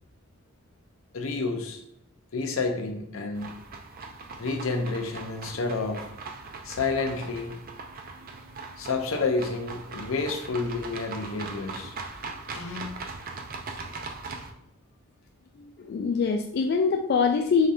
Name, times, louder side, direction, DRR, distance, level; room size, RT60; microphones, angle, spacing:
voice 1, 1.1-1.8 2.3-3.5 4.4-6.1 6.6-7.6 8.8-11.9 12.5-13.1, left 3 dB, 80° left, 4 dB, 0.7 m, -30 dB
sound 1, 3.4-14.5, right 4 dB, 45° right, 0.5 m, -40 dB
voice 2, 15.8-17.7, left 5 dB, 50° left, 4 dB, 0.3 m, -24 dB
5.0 x 3.1 x 2.7 m, 0.80 s
head